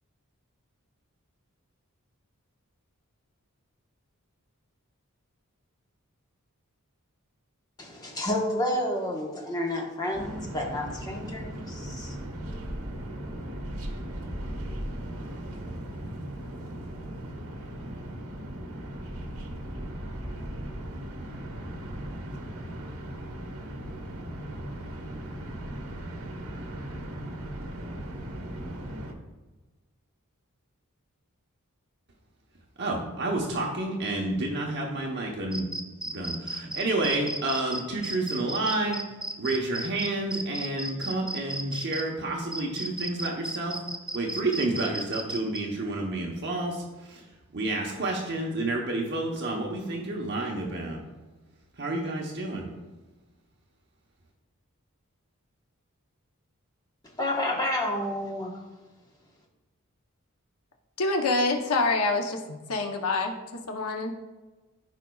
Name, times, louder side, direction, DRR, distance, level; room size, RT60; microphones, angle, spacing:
voice 1, 7.8-12.1 57.2-58.6, left 1 dB, 15° left, -1 dB, 1.1 m, -30 dB
sound 1, 10.1-29.1, right 1 dB, 75° right, 1.3 m, -37 dB
voice 2, 32.8-35.7 36.0-39.0 39.4-43.8 44.1-47.2 47.5-51.0 51.8-52.7, right 2 dB, 50° right, -1 dB, 1.0 m, -30 dB
sound 2, 35.5-42.0 42.5-45.6, right 2 dB, 5° right, 0.4 m, -34 dB
voice 3, 61.0-63.4 63.7-64.1, left 3 dB, 80° left, 3 dB, 0.8 m, -26 dB
14.0 x 5.1 x 2.3 m, 1.2 s
head